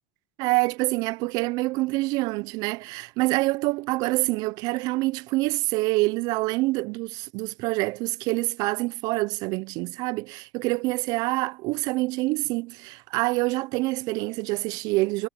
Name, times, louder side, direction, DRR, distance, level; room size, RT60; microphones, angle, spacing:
voice 1, 0.4-15.3, right 22 dB, 60° right, 0.8 m, -26 dB
hypercardioid pair, 95°, 8 cm